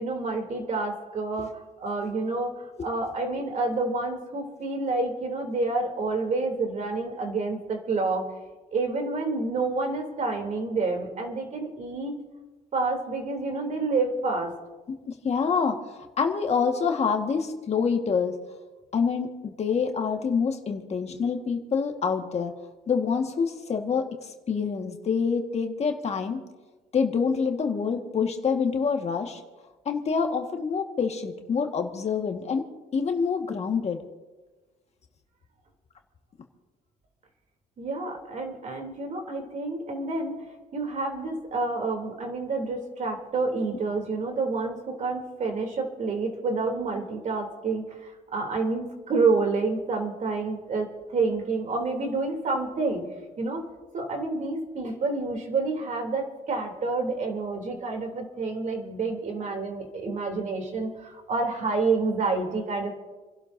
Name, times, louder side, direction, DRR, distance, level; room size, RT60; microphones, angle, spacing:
voice 1, 0.0-8.3 8.7-12.1 12.7-14.5 37.8-40.4 40.7-50.9 51.1-53.1 53.4-53.6 53.9-62.9, right 3 dB, 45° right, 2 dB, 3.1 m, -28 dB
voice 2, 14.9-18.4 18.9-22.5 22.9-26.4 26.9-29.4 29.8-32.6 32.9-34.0, left 5 dB, 40° left, 3 dB, 1.6 m, -26 dB
30.0 x 11.5 x 2.7 m, 1.2 s
cardioid pair, 110°, 17 cm